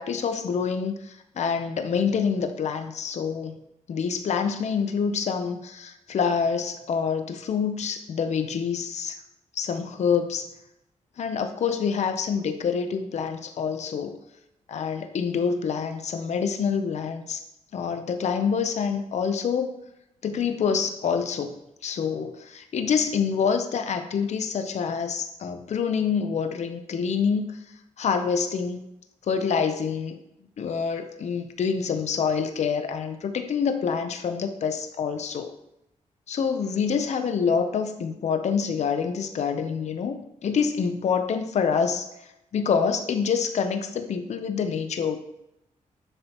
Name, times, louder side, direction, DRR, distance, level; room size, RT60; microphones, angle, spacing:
voice 1, 0.0-3.5 3.9-9.2 9.5-10.5 11.2-14.2 14.7-17.4 17.7-19.8 20.2-21.5 21.8-27.6 28.0-28.8 29.3-30.2 30.6-35.5 36.3-42.1 42.5-45.2, left 6 dB, 60° left, 8 dB, 0.6 m, -26 dB
11.5 x 6.7 x 2.9 m, 0.86 s
wide cardioid pair, 135°, 13 cm